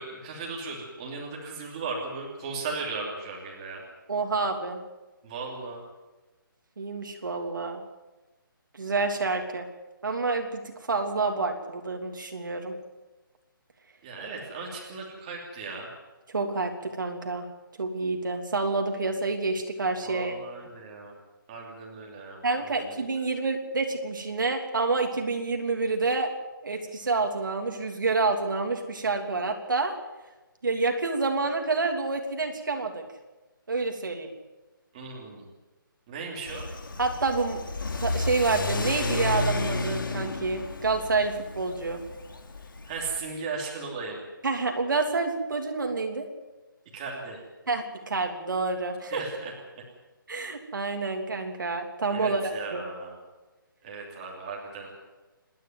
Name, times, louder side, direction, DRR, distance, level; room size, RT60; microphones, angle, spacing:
voice 1, 0.0-3.8 5.2-5.8 14.0-15.9 20.0-21.1 21.5-22.9 34.9-35.5 36.1-36.7 42.9-44.2 46.9-47.4 49.1-49.8 52.1-53.2 53.8-54.9, right 4 dB, 15° right, -2 dB, 3.0 m, -37 dB
voice 2, 4.1-4.8 6.8-7.8 8.7-9.7 10.0-12.7 16.3-17.5 17.8-20.3 22.4-26.3 26.6-30.0 30.6-33.0 33.7-34.3 37.0-37.6 38.0-42.0 44.4-46.3 47.7-49.2 50.3-52.8, right 3 dB, 60° right, 4 dB, 3.1 m, -28 dB
Car / Accelerating revving vroom, 36.5-43.2, left 2 dB, 65° left, 2.9 m, -32 dB
27.0 x 11.0 x 9.4 m, 1.1 s
hypercardioid pair, 175°, 12 cm